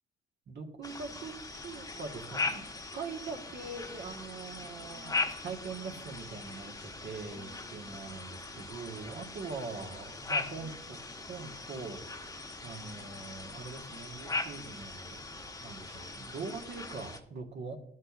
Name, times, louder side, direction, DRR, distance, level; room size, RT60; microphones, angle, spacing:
voice 1, 0.5-2.6 2.9-17.8, right 4 dB, 60° right, 2 dB, 1.6 m, -43 dB
sound 1, 0.8-17.2, left 3 dB, 15° left, 1.2 m, -40 dB
12.5 x 6.4 x 2.5 m, 0.79 s
cardioid pair, 90°, 20 cm